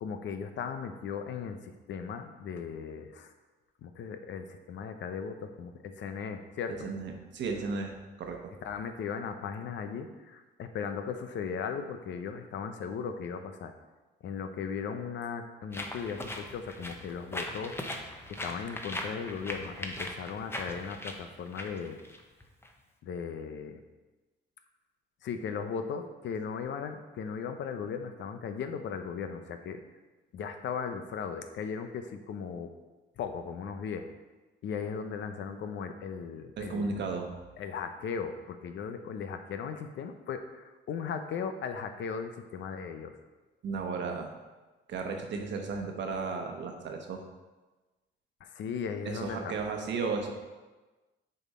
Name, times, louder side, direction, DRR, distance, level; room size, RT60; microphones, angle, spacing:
voice 1, 0.0-3.3 3.8-6.9 8.6-13.7 14.2-22.0 23.0-23.8 25.2-29.8 30.3-32.7 33.2-34.1 34.6-37.1 37.6-43.2 48.4-49.5, left 6 dB, 65° left, 8 dB, 0.6 m, -37 dB
voice 2, 6.8-8.5 36.6-37.3 43.6-44.3 44.9-47.2 49.0-50.3, right 4 dB, 65° right, 3 dB, 1.0 m, -34 dB
sound 1, 15.7-22.7, left 1 dB, 10° left, 0.8 m, -40 dB
6.7 x 4.3 x 4.2 m, 1.2 s
cardioid pair, 90°, 20 cm